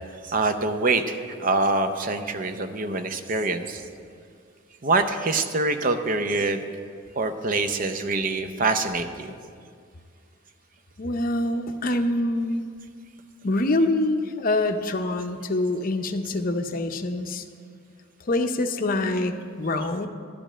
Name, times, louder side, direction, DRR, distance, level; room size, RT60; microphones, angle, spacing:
voice 1, 0.2-3.9 4.8-6.6 7.2-9.3 19.8-19.9, right 3 dB, 40° right, 8 dB, 0.6 m, -25 dB
voice 2, 11.0-12.6 13.4-17.5 18.2-20.1, left 2 dB, 45° left, 6 dB, 0.6 m, -25 dB
12.0 x 5.2 x 8.7 m, 2.2 s
head